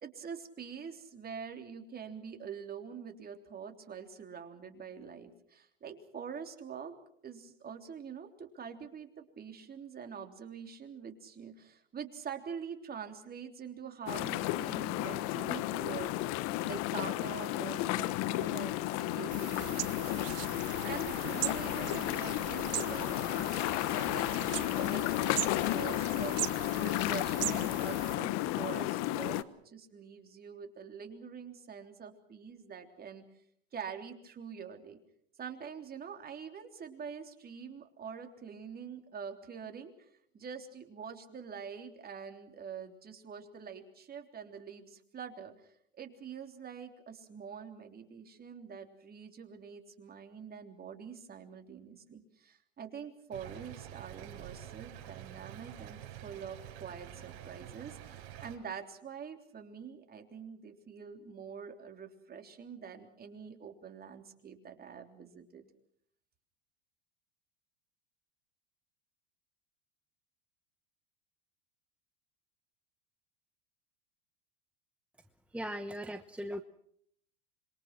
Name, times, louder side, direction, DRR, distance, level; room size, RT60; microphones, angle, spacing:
voice 1, 0.0-6.9 7.2-20.3 20.6-33.2 33.7-35.0 35.4-40.1 40.3-45.7 46.0-65.7, right 7 dB, 30° right, 5 dB, 3.5 m, -45 dB
sound 1, 14.1-29.4, left 16 dB, 55° left, 1.2 m, -33 dB
sound 2, 19.3-28.2, right 16 dB, 50° right, 1.4 m, -40 dB
Stream / Trickle dribble, 53.3-58.6, right 11 dB, 65° right, 6.8 m, -48 dB
voice 2, 75.5-76.6, equal, 5° right, 9 dB, 1.0 m, -38 dB
26.5 x 23.5 x 6.0 m, 0.67 s
hypercardioid pair, 100°, 32 cm